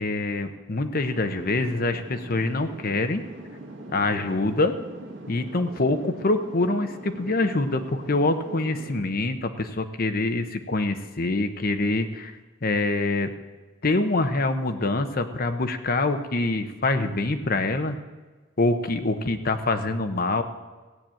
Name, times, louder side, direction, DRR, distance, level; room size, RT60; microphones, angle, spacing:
voice 1, 0.0-3.2 3.9-4.8 5.3-12.3 12.6-13.3 13.8-18.0 18.6-20.4, left 2 dB, 50° left, 7 dB, 0.9 m, -25 dB
sound 1, 1.0-9.0, right 2 dB, 80° right, 1.8 m, -42 dB
16.0 x 8.7 x 7.7 m, 1.3 s
head